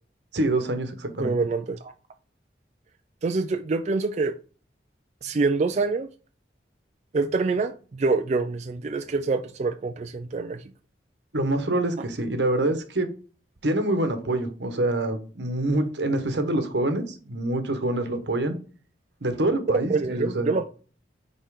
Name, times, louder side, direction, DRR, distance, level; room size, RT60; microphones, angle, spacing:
voice 1, 0.3-1.4 11.3-13.1 13.6-18.6 19.2-20.6, right 1 dB, 80° right, 1.1 m, -26 dB
voice 2, 1.2-1.9 3.2-4.3 5.2-6.1 7.1-10.6 19.9-20.7, right 3 dB, 40° right, 0.4 m, -26 dB
5.5 x 4.4 x 4.9 m
head